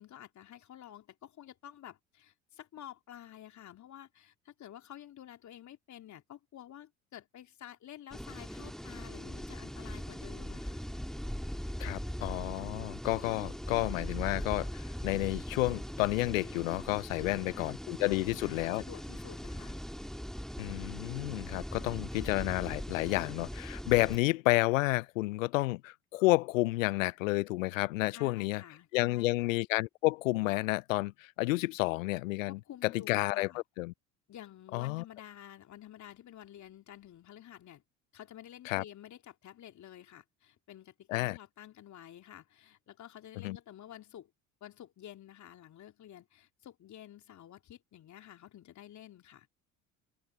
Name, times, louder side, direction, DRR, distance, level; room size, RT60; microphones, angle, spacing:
voice 1, 0.0-10.8 17.1-19.8 28.1-29.5 32.4-33.6 34.3-37.8 38.1-44.3 44.6-49.5, left 11 dB, 45° left, 3.4 m, -51 dB
sound 1, 8.1-24.2, equal, ahead, 2.1 m, -40 dB
voice 2, 11.8-14.7 15.0-18.8 20.6-28.6 28.9-33.9 34.7-35.0 38.7-38.8 41.1-41.4 43.4-43.6, left 20 dB, 75° left, 0.5 m, -30 dB
hypercardioid pair, 65°, 39 cm